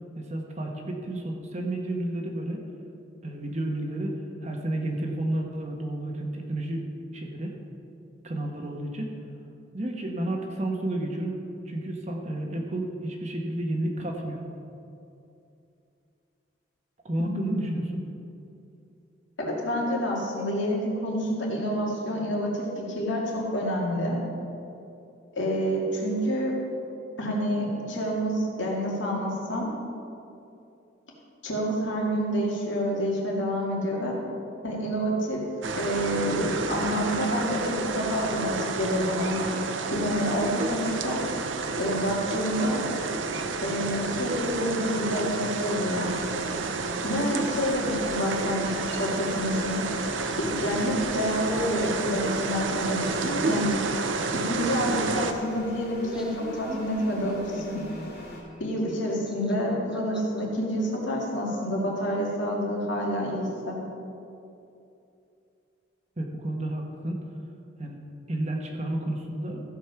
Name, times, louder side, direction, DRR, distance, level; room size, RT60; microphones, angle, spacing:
voice 1, 0.1-2.6 3.2-6.8 7.1-7.6 8.2-9.1 9.7-11.4 11.7-14.4 17.0-18.1 66.2-67.2 67.8-68.0 68.3-69.6, right 1 dB, 35° right, 1 dB, 1.1 m, -31 dB
voice 2, 17.2-17.8 19.4-24.2 25.3-26.6 27.2-29.7 31.4-34.2 34.6-35.4 35.8-39.4 39.9-41.2 41.7-42.8 43.6-46.1 47.0-49.8 50.4-53.8 54.3-57.8 58.6-63.8, equal, 75° left, -3 dB, 2.4 m, -28 dB
sound 1, 35.6-55.3, right 4 dB, 75° right, 0.7 m, -30 dB
sound 2, 46.0-58.4, left 2 dB, 50° left, 2.8 m, -46 dB
Laughter, 55.8-60.4, equal, 5° right, 0.7 m, -42 dB
15.0 x 5.3 x 5.9 m, 2.7 s
head